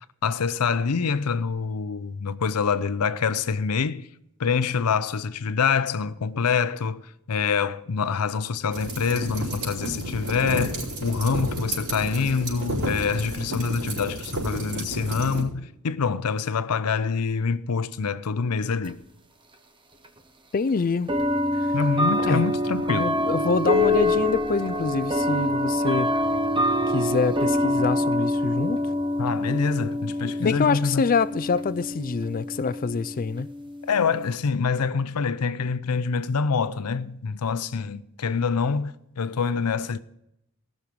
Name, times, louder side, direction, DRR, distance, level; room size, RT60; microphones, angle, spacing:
voice 1, 0.2-4.1 4.4-19.0 21.7-23.1 29.2-31.0 33.8-40.0, left 5 dB, 85° left, 0.6 m, -26 dB
sound 1, 8.7-15.4, right 1 dB, 70° right, 4.6 m, -31 dB
sound 2, 18.8-18.9 20.0-20.1 21.1-34.3, left 1 dB, 20° right, 0.9 m, -25 dB
voice 2, 20.5-21.1 21.6-21.7 22.2-22.4 22.9-26.1 26.9-28.8 30.4-33.5, left 5 dB, 40° left, 0.4 m, -25 dB
17.5 x 6.5 x 5.2 m
head